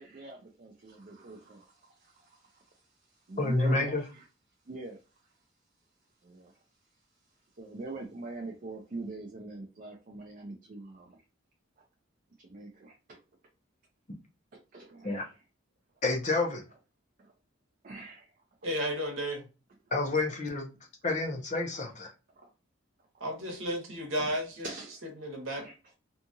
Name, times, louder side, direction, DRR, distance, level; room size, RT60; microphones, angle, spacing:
voice 1, 0.0-2.8 3.1-4.2 4.7-5.0 6.2-6.6 7.6-11.2 12.4-13.2 14.5-15.3 17.2-17.3 17.8-18.3 22.4-22.5 24.2-24.3 24.6-25.0 25.6-25.9, right 2 dB, 40° right, 2 dB, 0.4 m, -44 dB
voice 2, 3.4-4.0 15.0-15.2 16.0-16.6 19.9-20.7 21.0-22.1, left 2 dB, 35° left, 2 dB, 0.6 m, -29 dB
voice 3, 18.6-19.4 23.2-24.7 25.2-25.7, equal, 70° right, 1 dB, 1.0 m, -33 dB
2.7 x 2.4 x 2.6 m, 0.31 s
head